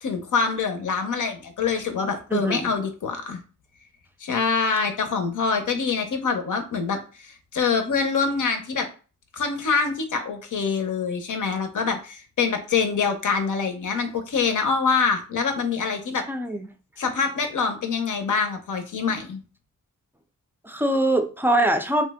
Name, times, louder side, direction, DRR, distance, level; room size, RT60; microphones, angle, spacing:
voice 1, 0.0-3.4 4.2-8.9 9.3-16.2 17.0-19.4, left 5 dB, 75° left, 0.6 m, -25 dB
voice 2, 2.3-2.7 16.3-16.7 20.6-22.1, right 1 dB, 5° right, 0.4 m, -23 dB
2.7 x 2.1 x 3.4 m
cardioid pair, 60°, 31 cm